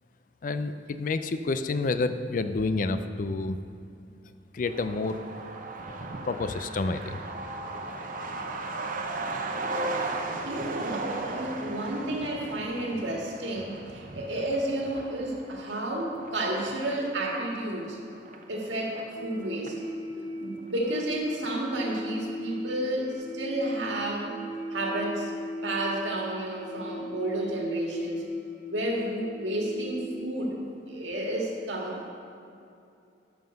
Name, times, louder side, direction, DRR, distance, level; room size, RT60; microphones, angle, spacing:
voice 1, 0.4-3.6 4.5-5.3 6.2-7.2, left 3 dB, 45° left, 10 dB, 0.4 m, -29 dB
Truck, 4.7-19.9 20.2-20.3 20.5-21.4 21.7-21.8 22.2-22.5, right 2 dB, 45° right, 0.7 m, -37 dB
Vehicle, 7.0-12.7, equal, 10° right, 0.7 m, -48 dB
voice 2, 10.5-18.0 18.5-19.8 20.4-24.3 24.7-25.3 25.6-28.3 28.7-32.1, right 1 dB, 85° right, -1 dB, 1.8 m, -31 dB
sound 1, 19.1-30.1, equal, 80° left, 1.5 m, -39 dB
13.0 x 5.7 x 5.3 m, 2.6 s
head